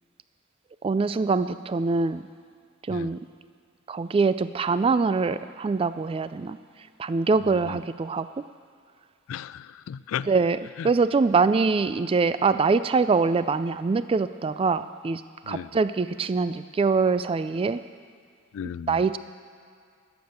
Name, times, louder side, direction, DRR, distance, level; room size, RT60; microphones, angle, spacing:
voice 1, 0.8-2.2 2.9-3.2 3.9-6.6 7.0-8.3 10.3-10.6 10.8-17.8 18.9-19.2, right 4 dB, 30° right, 13 dB, 0.3 m, -24 dB
voice 2, 9.3-10.3 10.8-10.9 15.4-15.7 18.5-19.0, left 8 dB, 85° left, 17 dB, 0.3 m, -35 dB
18.0 x 7.1 x 7.9 m, 2.2 s
head